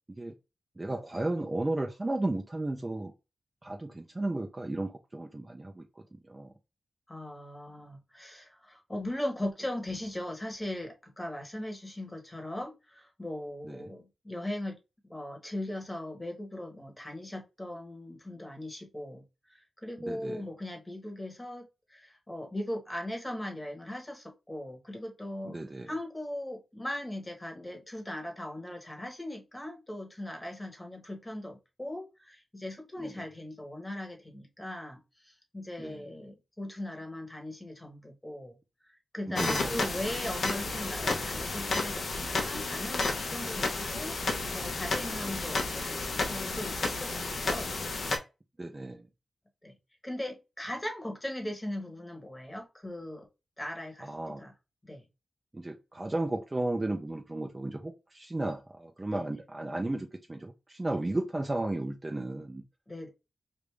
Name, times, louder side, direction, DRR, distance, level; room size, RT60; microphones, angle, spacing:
voice 1, 0.8-3.1 3.6-6.5 13.7-13.9 20.1-20.4 25.4-25.9 33.0-33.1 35.8-36.0 39.3-39.7 48.6-49.0 54.0-54.4 55.5-62.6, right 2 dB, 20° right, 0.5 m, -34 dB
voice 2, 7.1-14.8 15.1-38.6 38.8-47.8 49.6-49.8 50.0-53.3 53.6-54.5 54.8-55.0 59.1-59.2 60.9-61.0 62.9-63.1, left 1 dB, 15° left, 1.1 m, -39 dB
sound 1, 39.4-48.2, left 3 dB, 70° left, 0.9 m, -32 dB
3.3 x 2.5 x 3.2 m
wide cardioid pair, 100°, 0 cm